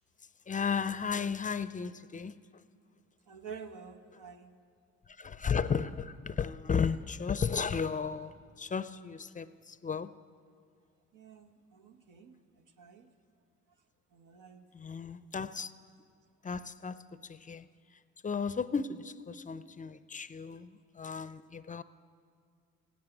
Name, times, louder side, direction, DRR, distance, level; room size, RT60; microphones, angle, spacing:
voice 1, 0.5-2.4 5.2-8.3 8.6-10.1 14.7-15.7 16.4-17.7 18.2-21.8, left 6 dB, 25° left, 15 dB, 0.4 m, -34 dB
voice 2, 3.3-4.5 11.1-12.4 12.8-13.1 14.1-14.7, right 6 dB, 90° right, 6 dB, 1.2 m, -49 dB
16.0 x 9.6 x 9.2 m, 2.2 s
cardioid pair, 90°, 30 cm